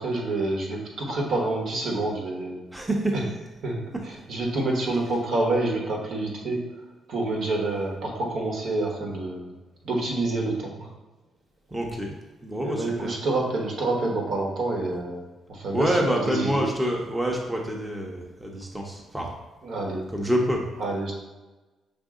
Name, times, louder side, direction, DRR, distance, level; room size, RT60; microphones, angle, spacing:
voice 1, 0.0-2.6 3.6-3.8 4.1-6.6 7.1-9.5 9.8-10.9 12.6-16.0 16.3-16.6 19.6-20.0 20.8-21.2, right 2 dB, 65° right, -1 dB, 1.2 m, -27 dB
voice 2, 2.7-3.3 11.7-12.1 12.4-13.1 15.7-19.3 20.1-20.6, equal, 10° right, -1 dB, 0.8 m, -27 dB
5.3 x 2.6 x 3.7 m, 1.1 s
cardioid pair, 90°, 0 cm